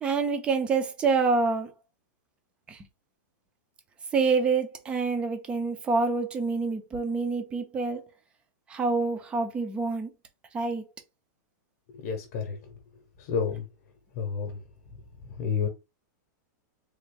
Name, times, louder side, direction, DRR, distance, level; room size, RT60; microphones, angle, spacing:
voice 1, 0.0-1.7 2.7-2.9 4.1-8.0 8.7-10.1 10.5-10.8, right 4 dB, 10° right, 0.4 m, -27 dB
voice 2, 11.9-12.6 13.2-13.6 14.2-14.6 15.4-15.7, left 6 dB, 35° left, 0.8 m, -30 dB
3.3 x 2.4 x 3.3 m
supercardioid pair, 175°, 11 cm